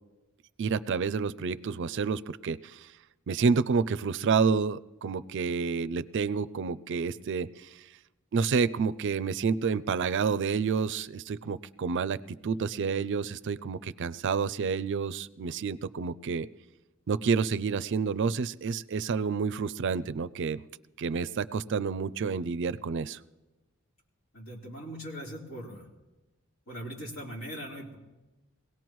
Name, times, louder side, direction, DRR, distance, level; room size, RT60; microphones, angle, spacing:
voice 1, 0.6-2.8 3.3-7.5 8.3-16.5 17.1-20.6 21.0-23.2, right 5 dB, 60° right, 17 dB, 0.4 m, -29 dB
voice 2, 24.3-25.9 26.7-28.0, equal, 75° left, -4 dB, 3.9 m, -40 dB
23.0 x 17.5 x 3.1 m, 1.1 s
head